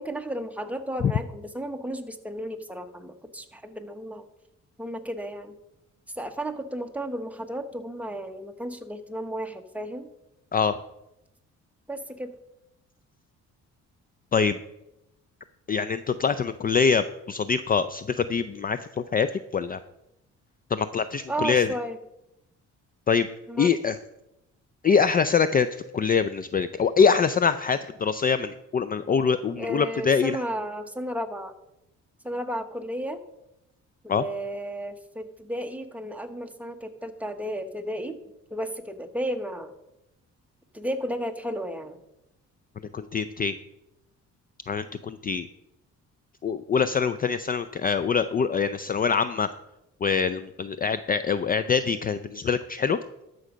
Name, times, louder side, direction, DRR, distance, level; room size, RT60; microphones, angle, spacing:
voice 1, 0.0-4.3 4.8-5.5 6.2-10.1 11.9-12.3 21.3-22.0 23.5-23.7 29.6-31.5 32.2-33.2 34.0-38.2 38.5-39.7 40.7-42.0, right 1 dB, 5° right, 5 dB, 1.1 m, -33 dB
voice 2, 15.7-19.8 20.7-21.8 23.1-23.3 23.6-24.0 24.8-30.4 34.1-34.3 42.9-43.6 44.7-45.5 46.4-49.5 50.0-53.0, left 6 dB, 30° left, 13 dB, 0.4 m, -24 dB
12.5 x 6.5 x 5.1 m, 0.88 s
cardioid pair, 90°, 30 cm